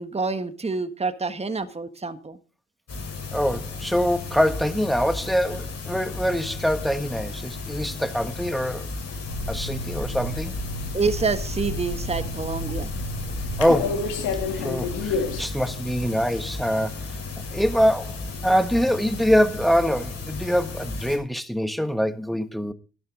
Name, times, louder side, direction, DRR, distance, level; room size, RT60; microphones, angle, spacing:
voice 1, 0.0-2.4 10.9-12.9, right 4 dB, 20° right, 1.4 m, -27 dB
sound 1, 2.9-21.2, left 3 dB, 55° left, 5.9 m, -34 dB
voice 2, 3.3-8.9 9.5-10.5 13.6-14.1 14.6-17.1 17.5-22.7, equal, ahead, 1.4 m, -24 dB
sound 2, 9.3-15.4, left 2 dB, 80° left, 2.8 m, -30 dB
13.0 x 12.0 x 3.8 m
supercardioid pair, 55°, 31 cm